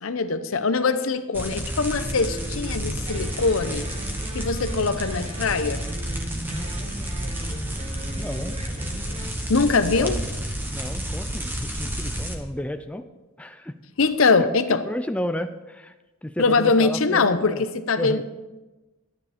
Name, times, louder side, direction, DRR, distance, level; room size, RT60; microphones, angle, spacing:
voice 1, 0.0-3.9 4.3-5.8 9.5-10.2 14.0-14.8 16.4-18.2, left 4 dB, 75° left, 11 dB, 0.7 m, -22 dB
sound 1, 1.3-12.3, equal, 10° right, 1.1 m, -30 dB
sound 2, 1.8-9.3, right 1 dB, 30° right, 0.9 m, -39 dB
voice 2, 8.2-8.6 9.9-10.1 10.7-13.1 13.4-13.7 14.4-15.9 16.2-17.6 18.0-18.2, left 1 dB, 5° left, 8 dB, 0.4 m, -32 dB
12.0 x 9.7 x 5.0 m, 1.1 s
head